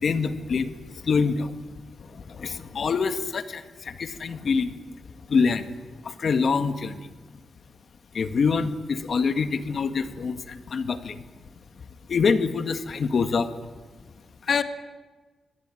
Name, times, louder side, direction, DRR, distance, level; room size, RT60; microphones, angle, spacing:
voice 1, 0.0-1.5 2.0-4.8 5.3-5.7 6.0-7.1 8.1-11.2 12.1-13.5 14.4-14.6, left 5 dB, 60° left, 9 dB, 1.8 m, -25 dB
25.0 x 18.5 x 9.3 m, 1.3 s
cardioid pair, 100°, 0 cm